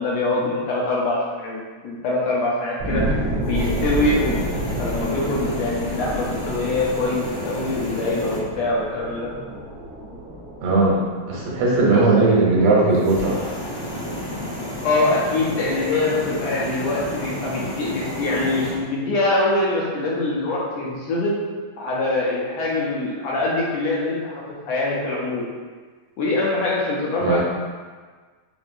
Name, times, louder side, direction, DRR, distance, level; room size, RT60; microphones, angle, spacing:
voice 1, 0.0-3.2 3.4-4.5 4.8-9.3 11.9-12.0 14.8-21.3 21.8-25.5 26.2-27.4, left 2 dB, 75° left, -5 dB, 1.7 m, -24 dB
sound 1, 2.8-13.8 14.3-14.4, right 1 dB, 55° right, 1.1 m, -30 dB
sound 2, 3.4-8.4 12.9-18.8, equal, 30° left, 0.4 m, -32 dB
voice 2, 10.6-11.0 11.3-13.3 27.2-27.4, right 3 dB, 80° right, -4 dB, 2.2 m, -18 dB
4.8 x 3.1 x 2.6 m, 1.5 s
omnidirectional pair, 3.3 m